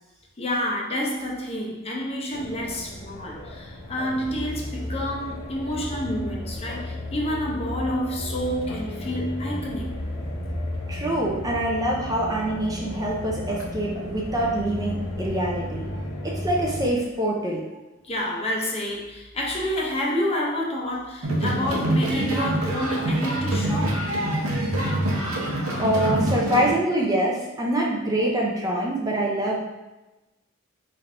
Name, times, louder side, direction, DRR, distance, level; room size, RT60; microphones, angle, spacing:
voice 1, 0.4-9.9 15.9-16.0 18.0-24.0, equal, 30° left, -2 dB, 0.6 m, -29 dB
sound 1, 2.3-16.9, left 1 dB, 65° left, 0.7 m, -33 dB
voice 2, 10.9-15.9 16.2-17.6 25.8-29.6, right 1 dB, 15° right, -3 dB, 0.5 m, -25 dB
sound 2, 21.2-26.7, right 1 dB, 75° right, 0.8 m, -25 dB
4.1 x 3.3 x 2.5 m, 1.0 s
head